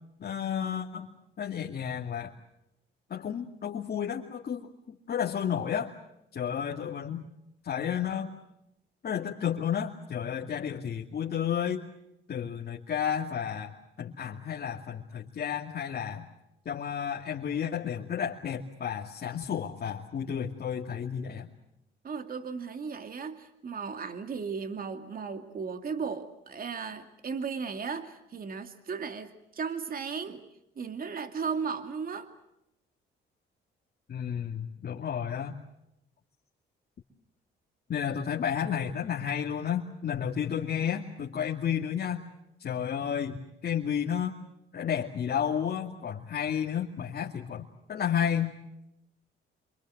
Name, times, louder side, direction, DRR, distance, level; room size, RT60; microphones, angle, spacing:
voice 1, 0.2-1.1 1.4-2.3 3.1-5.9 6.3-7.2 7.6-8.3 9.0-11.8 12.3-13.7 14.0-16.2 16.7-21.5 34.1-35.6 37.9-42.2 42.6-44.3 44.7-48.6, left 8 dB, 50° left, -1 dB, 2.5 m, -32 dB
voice 2, 22.0-30.4 30.8-32.3, right 5 dB, 45° right, 7 dB, 2.5 m, -36 dB
27.5 x 25.5 x 8.0 m, 0.84 s
cardioid pair, 90°, 20 cm